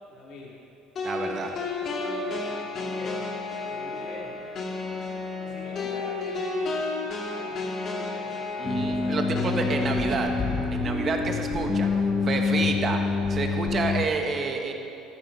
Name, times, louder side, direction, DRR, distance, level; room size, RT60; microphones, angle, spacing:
voice 1, 0.1-0.6 1.2-3.3 3.7-4.5 5.4-6.8 7.3-8.4 8.9-9.2 11.6-12.9 13.4-13.9, left 2 dB, 60° left, -5 dB, 2.9 m, -42 dB
sound 1, 1.0-10.6, left 3 dB, 45° left, 2.0 m, -32 dB
voice 2, 1.0-1.5 8.6-10.3 10.7-11.9 12.3-13.0 13.3-14.7, right 4 dB, 35° right, 4 dB, 1.6 m, -29 dB
sound 2, 8.6-14.0, left 4 dB, 25° left, 1.4 m, -26 dB
13.0 x 12.0 x 5.5 m, 2.7 s
cardioid pair, 115°, 0 cm